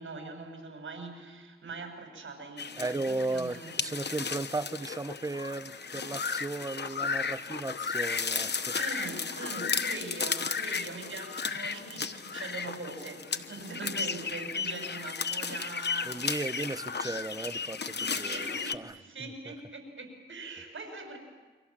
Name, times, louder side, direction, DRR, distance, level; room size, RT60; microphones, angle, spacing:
voice 1, 0.0-3.9 8.7-16.3 18.1-21.2, right 3 dB, 70° right, 7.0 m, -42 dB
sound 1, 2.6-18.8, left 5 dB, 55° left, 1.1 m, -34 dB
voice 2, 2.8-8.7 16.1-19.5, right 2 dB, 15° right, 0.8 m, -36 dB
29.0 x 25.0 x 7.5 m
wide cardioid pair, 75°, 21 cm